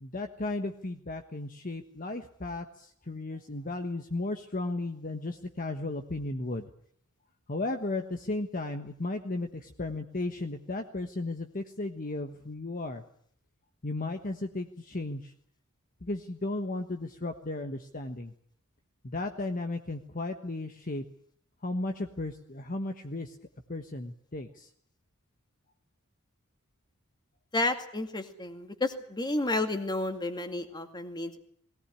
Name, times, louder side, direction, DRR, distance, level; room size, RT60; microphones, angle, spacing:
voice 1, 0.0-6.7 7.5-13.0 13.8-15.3 16.0-18.3 19.0-21.0 21.6-23.4 23.7-24.7, left 2 dB, 40° left, 6 dB, 1.3 m, -35 dB
voice 2, 27.5-31.4, left 2 dB, 20° left, 7 dB, 2.2 m, -31 dB
21.0 x 18.0 x 10.0 m, 0.63 s
head